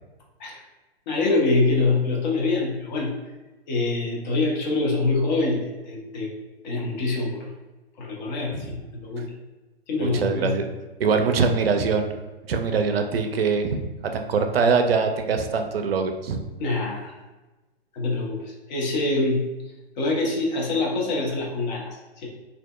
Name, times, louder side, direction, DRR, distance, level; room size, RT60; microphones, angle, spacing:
voice 1, 1.1-3.1 3.7-6.3 6.6-7.5 8.0-9.3 9.9-10.5 16.6-17.2 17.9-22.3, left 3 dB, 45° left, -2 dB, 0.9 m, -25 dB
voice 2, 10.0-10.6 11.0-12.1 12.5-13.8 14.1-16.4, right 5 dB, 65° right, 5 dB, 0.5 m, -23 dB
3.3 x 2.6 x 2.2 m, 1.1 s
figure-of-eight pair, 110°, 32 cm